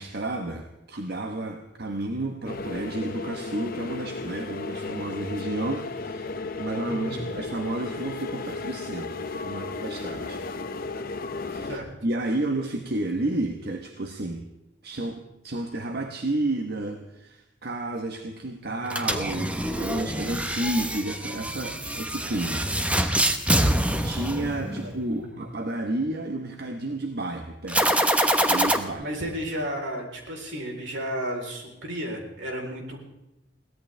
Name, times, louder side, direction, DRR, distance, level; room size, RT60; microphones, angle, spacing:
voice 1, 0.0-6.3 6.6-10.4 11.3-14.5 14.8-23.1 24.0-27.9 28.4-29.1, right 2 dB, 60° right, 5 dB, 1.1 m, -31 dB
sound 1, 2.5-11.8, left 3 dB, 55° left, 0.9 m, -34 dB
voice 2, 6.8-7.3 11.7-11.9 24.8-24.9 29.0-33.0, equal, 80° right, 1 dB, 3.8 m, -33 dB
sound 2, 18.9-25.0 27.7-28.8, right 1 dB, 5° right, 1.0 m, -25 dB
22.0 x 17.0 x 3.4 m, 0.93 s
head